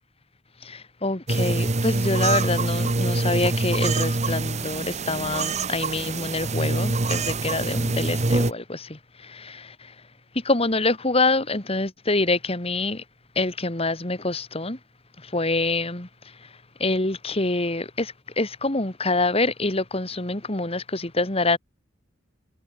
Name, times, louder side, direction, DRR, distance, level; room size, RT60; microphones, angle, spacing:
voice 1, 0.6-9.7 10.4-13.0 13.4-14.8 15.3-16.1 16.8-21.6, left 2 dB, 30° left, 2.4 m, -26 dB
sound 1, 1.3-8.5, right 2 dB, 35° right, 1.2 m, -25 dB
head